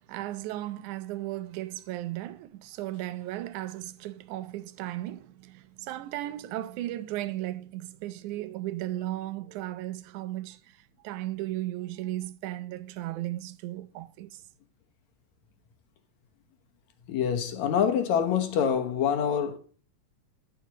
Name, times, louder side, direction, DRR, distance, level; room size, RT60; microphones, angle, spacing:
voice 1, 0.0-14.4, right 15 dB, 85° right, 2.1 m, -36 dB
voice 2, 17.1-19.6, left 8 dB, 70° left, 2.3 m, -26 dB
9.4 x 8.0 x 2.9 m
omnidirectional pair, 3.5 m